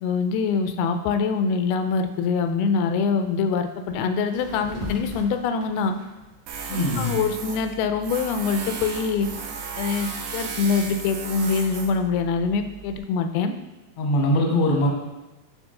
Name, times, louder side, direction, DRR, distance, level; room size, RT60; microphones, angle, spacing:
voice 1, 0.0-5.9 6.7-9.3 9.8-13.5, left 5 dB, 85° left, 7 dB, 2.4 m, -24 dB
sound 1, 3.9-4.0 4.3-7.0 7.5-10.0, left 2 dB, 60° right, 2.5 m, -39 dB
Tools, 6.5-13.0, right 5 dB, 80° right, 2.5 m, -35 dB
voice 2, 6.7-7.2 14.0-14.9, left 1 dB, 65° left, 0 dB, 1.5 m, -21 dB
9.8 x 3.4 x 3.7 m, 1.1 s
omnidirectional pair, 4.3 m